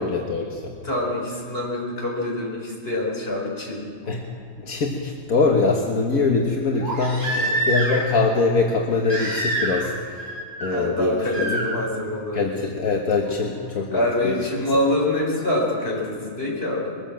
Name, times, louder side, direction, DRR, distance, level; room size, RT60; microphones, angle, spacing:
voice 1, 0.0-0.8 4.1-4.2 4.6-11.7 12.3-14.4, left 3 dB, 80° left, 0 dB, 1.9 m, -23 dB
voice 2, 0.8-3.9 7.3-7.6 10.7-12.4 13.9-16.9, left 1 dB, 45° left, -3 dB, 5.4 m, -25 dB
Crying sobbing, 4.1-4.2 6.8-8.1 9.1-9.9 10.2-10.7 11.3-11.6 13.3-13.4, right 1 dB, 15° right, 5.4 m, -26 dB
22.0 x 15.5 x 7.7 m, 2.1 s
omnidirectional pair, 1.5 m